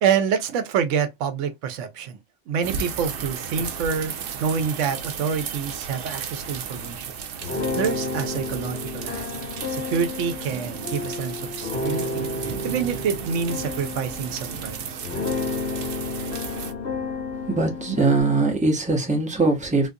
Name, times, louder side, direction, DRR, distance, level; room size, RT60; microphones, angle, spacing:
voice 1, 0.0-2.2 2.5-4.1 4.4-7.1 7.8-9.3 9.7-14.8, right 6 dB, 90° right, 1.0 m, -27 dB
sound 1, 2.6-16.7, right 7 dB, 60° right, 0.7 m, -34 dB
sound 2, 7.4-18.2, left 3 dB, 70° left, 2.0 m, -31 dB
voice 2, 17.5-19.9, right 3 dB, 5° right, 0.8 m, -21 dB
3.8 x 2.5 x 2.6 m
omnidirectional pair, 1.2 m